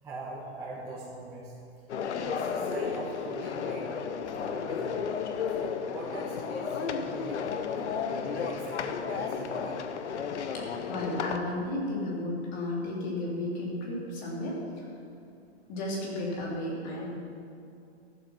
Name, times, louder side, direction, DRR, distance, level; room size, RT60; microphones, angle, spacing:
voice 1, 0.0-1.5 2.2-3.9 4.3-5.0 5.5-7.6 8.2-9.8 17.0-17.1, right 2 dB, 10° right, -12 dB, 2.0 m, -42 dB
sound 1, 1.9-11.4, left 6 dB, 90° left, 1.0 m, -33 dB
voice 2, 10.5-14.8 15.7-17.1, left 1 dB, 40° left, -3 dB, 3.4 m, -33 dB
13.5 x 7.9 x 6.0 m, 2.5 s
hypercardioid pair, 155°, 34 cm